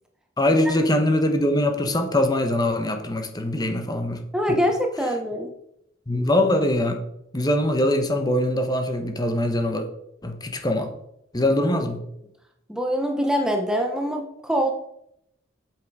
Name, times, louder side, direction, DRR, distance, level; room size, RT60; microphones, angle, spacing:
voice 1, 0.4-4.2 6.1-7.0 7.3-9.9 10.2-10.9 11.3-12.0, left 1 dB, 20° left, 5 dB, 1.0 m, -22 dB
voice 2, 4.3-5.5 12.7-14.7, equal, 5° right, 3 dB, 0.9 m, -24 dB
8.6 x 7.6 x 4.8 m, 0.79 s
head